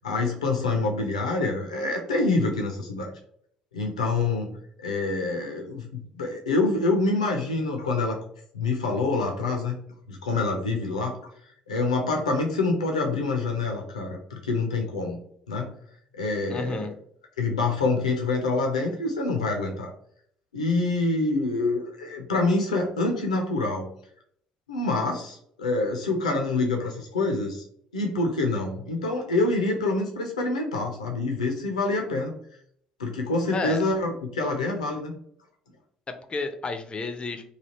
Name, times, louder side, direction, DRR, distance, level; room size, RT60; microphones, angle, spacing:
voice 1, 0.0-3.1 3.7-4.5 4.8-8.2 8.5-9.8 10.1-11.2 11.7-15.2 15.5-15.8 16.1-16.9 17.4-19.9 20.5-23.9 24.7-27.6 27.9-32.3 33.0-35.1, left 3 dB, 80° left, 2 dB, 0.5 m, -26 dB
voice 2, 16.5-16.9 33.5-33.8 36.1-37.4, left 4 dB, 30° left, 8 dB, 0.5 m, -31 dB
3.2 x 2.4 x 2.8 m, 0.65 s
figure-of-eight pair, 50°, 4 cm